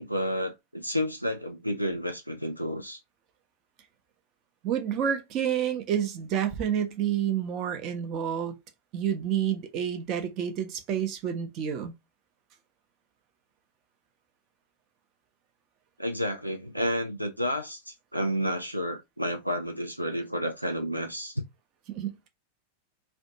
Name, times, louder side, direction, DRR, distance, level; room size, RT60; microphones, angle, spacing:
voice 1, 0.0-3.0 16.0-21.4, equal, 90° right, 0.4 m, -31 dB
voice 2, 4.6-8.6 8.9-11.9 21.9-22.1, right 9 dB, 40° right, 0.6 m, -29 dB
2.5 x 2.2 x 2.6 m
figure-of-eight pair, 90°, 0 cm